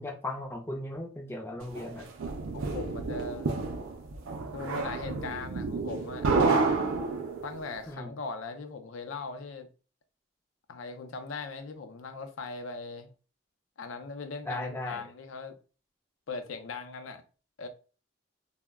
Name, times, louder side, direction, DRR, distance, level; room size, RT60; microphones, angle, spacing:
voice 1, 0.0-2.1 7.9-8.1 14.4-15.0, left 1 dB, 10° left, 0.4 m, -37 dB
sound 1, 1.8-7.6, right 3 dB, 80° right, 0.5 m, -30 dB
voice 2, 2.3-3.5 4.5-6.3 7.4-9.7 10.7-13.1 13.8-15.5 16.3-17.2 17.6-17.7, left 4 dB, 80° left, 0.5 m, -39 dB
2.2 x 2.0 x 3.4 m
head